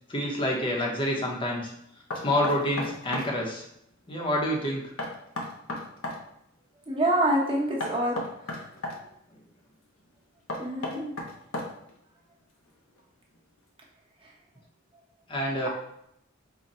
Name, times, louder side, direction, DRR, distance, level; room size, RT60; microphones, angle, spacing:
voice 1, 0.1-1.7 2.2-3.6 4.1-4.9 15.3-15.7, left 1 dB, 25° left, -1 dB, 0.8 m, -27 dB
Knock, 2.1-3.3 5.0-6.2 7.8-9.0 10.5-11.9, left 2 dB, 85° left, 0.7 m, -34 dB
voice 2, 6.9-8.2 10.6-11.1, right 1 dB, 25° right, -2 dB, 0.9 m, -26 dB
3.9 x 2.1 x 4.2 m, 0.76 s
head